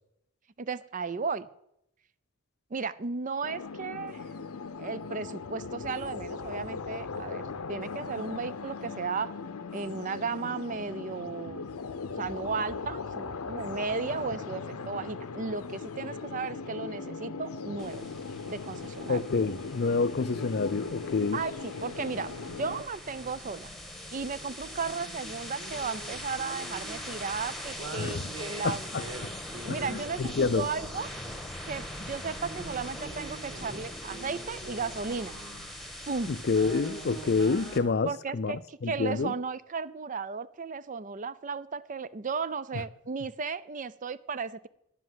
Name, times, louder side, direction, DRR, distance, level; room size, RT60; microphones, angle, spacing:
voice 1, 0.6-1.5 2.7-4.2 4.8-7.4 7.7-9.3 9.7-11.7 12.2-18.0 18.5-19.2 21.3-23.7 24.1-28.9 29.6-31.1 31.7-35.4 36.1-36.3 38.1-44.7, right 4 dB, 35° right, 0.4 m, -35 dB
sound 1, 3.4-22.8, left 4 dB, 80° left, 0.7 m, -39 dB
sound 2, 17.8-37.8, left 1 dB, ahead, 1.3 m, -42 dB
voice 2, 19.1-21.4 28.0-28.3 28.6-29.0 29.7-30.7 36.3-39.3 42.7-42.8, left 4 dB, 45° left, 0.5 m, -28 dB
sound 3, 22.2-37.9, right 2 dB, 60° right, 2.0 m, -46 dB
10.5 x 7.6 x 7.7 m
head